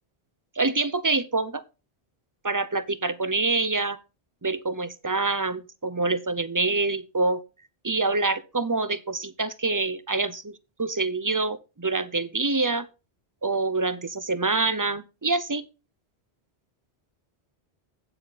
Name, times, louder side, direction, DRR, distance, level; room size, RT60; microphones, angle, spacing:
voice 1, 0.6-1.6 2.4-4.0 4.4-7.4 7.8-12.9 13.4-15.6, right 3 dB, 25° right, 0.5 m, -26 dB
8.5 x 7.9 x 4.1 m
omnidirectional pair, 1.1 m